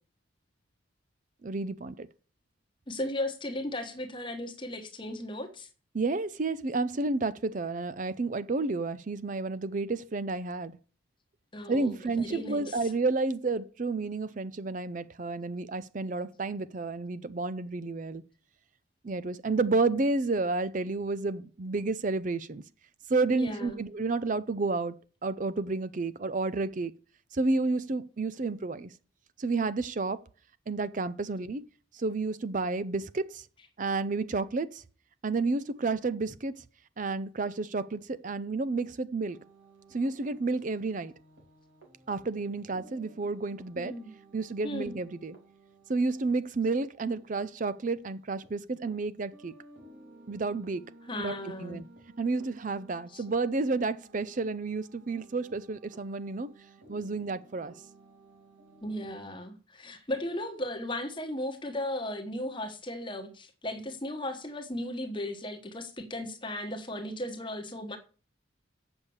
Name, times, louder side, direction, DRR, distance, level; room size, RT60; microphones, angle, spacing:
voice 1, 1.4-2.1 5.9-10.8 11.7-18.2 19.0-22.6 23.1-25.0 25.2-26.9 27.3-28.9 29.4-30.2 30.7-31.6 31.9-33.5 33.8-34.8 35.2-36.6 37.0-39.4 39.9-41.1 42.1-44.0 44.3-45.4 45.9-49.5 50.3-50.8 51.2-51.8 52.2-56.5 56.9-57.7, right 3 dB, 40° right, 0.5 m, -31 dB
voice 2, 2.9-5.7 11.5-12.9 23.3-23.8 43.8-44.1 44.6-44.9 51.1-51.8 53.1-53.2 58.8-68.0, left 1 dB, 25° left, 1.2 m, -36 dB
sound 1, 39.3-48.5 48.9-49.0 49.3-59.2, right 2 dB, 60° right, 4.2 m, -56 dB
8.1 x 7.0 x 7.0 m
head